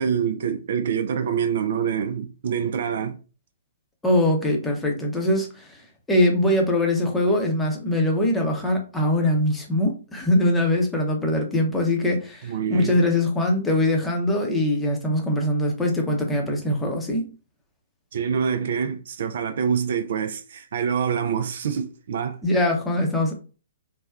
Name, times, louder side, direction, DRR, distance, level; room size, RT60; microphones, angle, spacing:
voice 1, 0.0-3.2 12.4-13.0 18.1-22.4, right 7 dB, 55° right, 0.3 m, -26 dB
voice 2, 4.0-5.7 6.1-17.3 22.4-23.3, left 1 dB, 10° left, 0.7 m, -22 dB
3.2 x 2.2 x 2.3 m
figure-of-eight pair, 125°, 0 cm